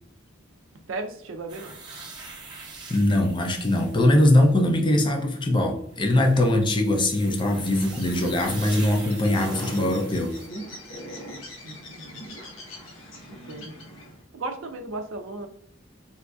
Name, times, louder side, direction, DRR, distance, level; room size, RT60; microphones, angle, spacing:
voice 1, 0.9-1.7 11.6-12.2 13.3-13.7 14.3-15.5, right 2 dB, 70° right, 5 dB, 0.5 m, -35 dB
sound 1, 1.5-4.8 5.9-10.5, right 4 dB, 20° right, 0.7 m, -43 dB
voice 2, 2.9-10.4, left 1 dB, 25° left, 3 dB, 0.5 m, -21 dB
Bird, 7.6-14.2, left 1 dB, 90° left, 1.0 m, -42 dB
4.0 x 2.6 x 2.2 m, 0.68 s
head